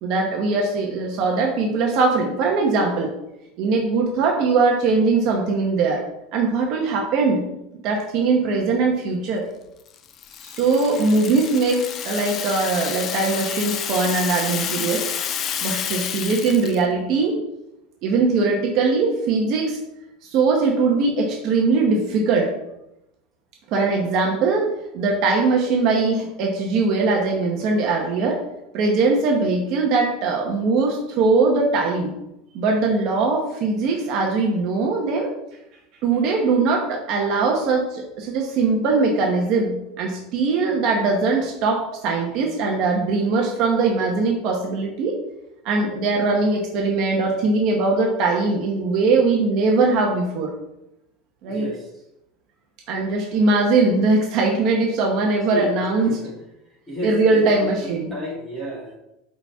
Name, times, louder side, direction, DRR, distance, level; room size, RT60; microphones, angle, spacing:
voice 1, 0.0-3.1 3.6-6.0 6.3-7.4 7.8-9.5 10.4-15.1 15.6-17.4 18.0-19.8 20.2-22.5 23.7-24.7 24.9-28.4 28.7-32.1 32.5-35.3 36.0-45.2 45.6-50.5 51.4-51.7 52.9-56.2 57.0-58.1, right 3 dB, 40° right, 0 dB, 1.0 m, -21 dB
Rattle (instrument), 9.9-16.8, left 8 dB, 30° left, 0.4 m, -29 dB
voice 2, 51.5-51.9 55.5-55.7 56.0-56.3 56.9-59.0, equal, 5° left, -7 dB, 2.5 m, -32 dB
8.8 x 4.3 x 3.6 m, 0.87 s
supercardioid pair, 170°, 0 cm